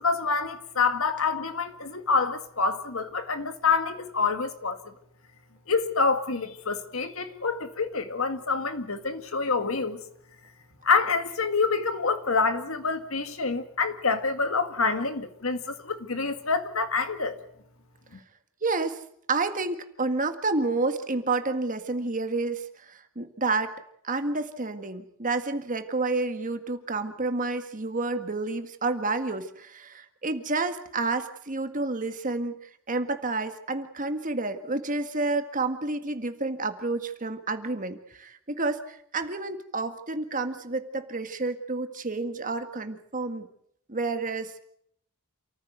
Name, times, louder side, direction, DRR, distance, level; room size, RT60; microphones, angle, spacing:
voice 1, 0.0-4.8 5.7-10.0 10.8-17.4, left 4 dB, 70° left, 2.0 m, -27 dB
voice 2, 18.6-19.0 19.3-23.7 24.0-32.6 32.9-43.5 43.9-44.6, right 3 dB, 35° right, 1.8 m, -29 dB
28.0 x 15.0 x 8.1 m
head